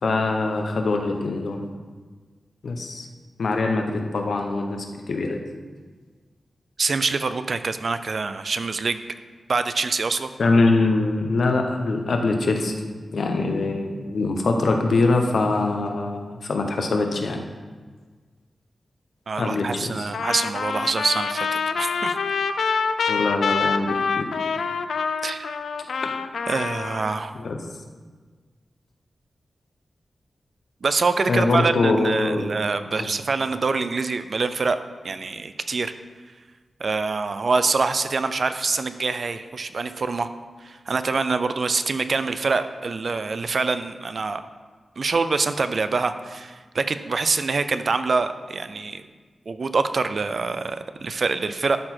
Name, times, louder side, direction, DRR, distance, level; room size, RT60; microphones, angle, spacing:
voice 1, 0.0-1.6 2.6-3.1 3.4-5.4 10.4-12.8 13.1-17.4 19.4-20.1 23.1-24.3 26.0-26.1 27.4-27.6 31.3-32.6 32.9-33.1, left 3 dB, 65° left, 4 dB, 0.9 m, -23 dB
voice 2, 6.8-9.0 9.5-10.3 19.3-22.2 25.2-25.5 26.5-27.3 30.8-34.8 35.0-35.9 36.8-40.3 40.6-44.4 45.0-49.0 49.5-51.8, right 4 dB, 50° right, 11 dB, 0.4 m, -25 dB
Trumpet, 20.1-27.2, left 5 dB, 85° left, 0.4 m, -26 dB
12.0 x 4.4 x 4.3 m, 1.5 s
wide cardioid pair, 140°, 0 cm